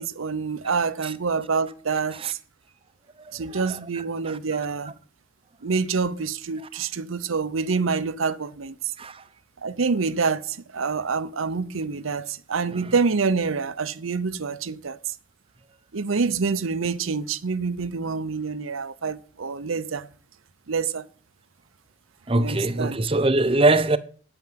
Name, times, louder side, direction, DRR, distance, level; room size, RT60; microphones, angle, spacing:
voice 1, 0.0-2.4 3.3-4.9 5.6-8.7 9.6-15.1 15.9-20.1 20.7-21.0 22.4-23.0, right 5 dB, 85° right, 0.7 m, -27 dB
voice 2, 22.3-24.0, right 2 dB, 25° right, 0.7 m, -22 dB
9.3 x 9.0 x 7.5 m
head